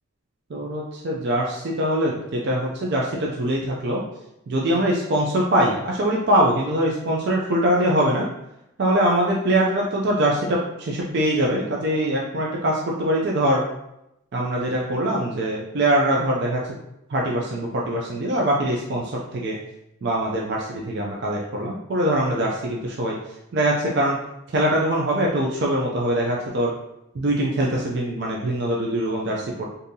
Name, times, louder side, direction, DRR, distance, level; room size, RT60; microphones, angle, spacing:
voice 1, 0.5-4.0 4.5-8.3 8.8-13.6 14.3-16.6 17.1-19.6 20.0-23.2 23.5-24.2 24.5-26.7 27.1-29.6, right 1 dB, 50° right, -2 dB, 0.4 m, -23 dB
3.7 x 2.7 x 2.7 m, 0.84 s
head